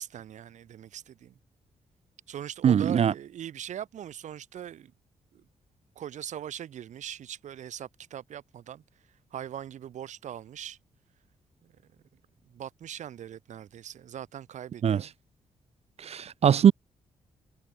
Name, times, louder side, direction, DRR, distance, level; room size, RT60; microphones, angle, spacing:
voice 1, 0.0-1.3 2.3-4.9 5.3-5.4 5.9-8.8 9.3-10.8 11.6-11.7 12.4-15.1, right 10 dB, 80° right, 3.2 m, -41 dB
voice 2, 2.6-3.1 14.8-15.0 16.0-16.7, right 8 dB, 60° right, 0.8 m, -21 dB
cardioid pair, 95°, 12 cm